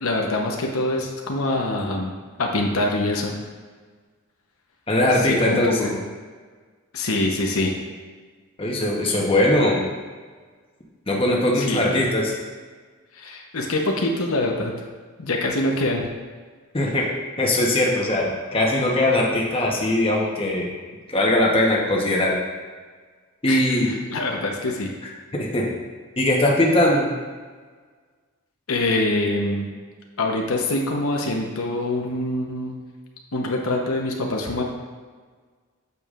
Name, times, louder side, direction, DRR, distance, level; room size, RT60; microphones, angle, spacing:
voice 1, 0.0-2.1 2.4-3.3 5.1-6.0 6.9-7.7 11.6-11.9 13.1-14.7 15.2-16.1 23.5-24.9 28.7-29.7 30.2-32.8 33.3-34.6, left 2 dB, 85° left, 1 dB, 1.0 m, -24 dB
voice 2, 4.9-5.9 8.6-9.8 11.1-12.3 16.7-17.1 17.4-20.7 21.1-22.3 23.4-23.9 25.3-25.6 26.2-27.1, left 1 dB, 25° left, -3 dB, 1.0 m, -20 dB
8.2 x 7.0 x 2.5 m, 1.5 s
head